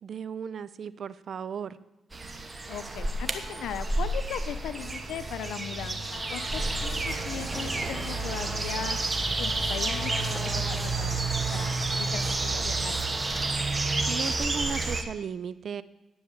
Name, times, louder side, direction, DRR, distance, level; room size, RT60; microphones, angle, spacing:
voice 1, 0.0-1.8 14.1-15.8, right 7 dB, 55° right, 17 dB, 0.5 m, -35 dB
sound 1, 2.1-15.0, right 2 dB, 25° right, 1.1 m, -30 dB
voice 2, 2.7-9.0 9.4-13.0, left 9 dB, 85° left, 12 dB, 0.8 m, -38 dB
Cheering, 6.3-11.8, left 2 dB, 55° left, 3.2 m, -50 dB
10.0 x 7.3 x 8.3 m, 0.95 s
cardioid pair, 105°, 0 cm